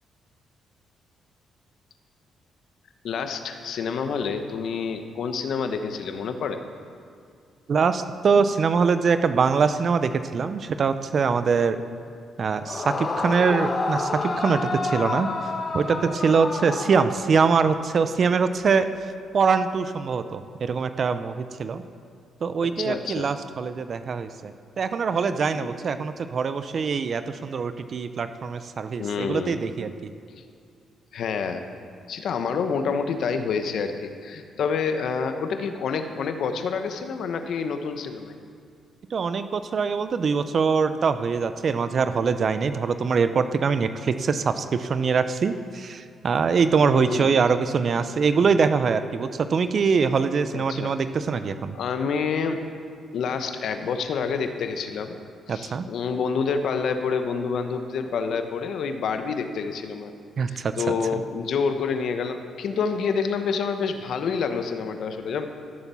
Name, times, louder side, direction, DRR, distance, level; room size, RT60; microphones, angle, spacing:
voice 1, 3.0-6.6 22.6-23.3 25.5-25.7 29.0-29.6 31.1-31.6 32.1-38.3 46.8-47.5 50.5-50.9 51.4-52.6 53.1-55.2 55.5-60.1 60.5-65.5, left 5 dB, 70° left, 7 dB, 1.0 m, -28 dB
voice 2, 7.7-11.8 12.4-15.3 15.7-18.9 19.3-21.8 22.4-30.1 39.1-51.8 55.5-55.9 60.4-60.7, right 5 dB, 50° right, 11 dB, 0.6 m, -23 dB
Yell / Screaming, 12.6-17.5, left 3 dB, 40° left, 1.3 m, -29 dB
14.0 x 7.2 x 7.0 m, 2.3 s
cardioid pair, 80°, 0 cm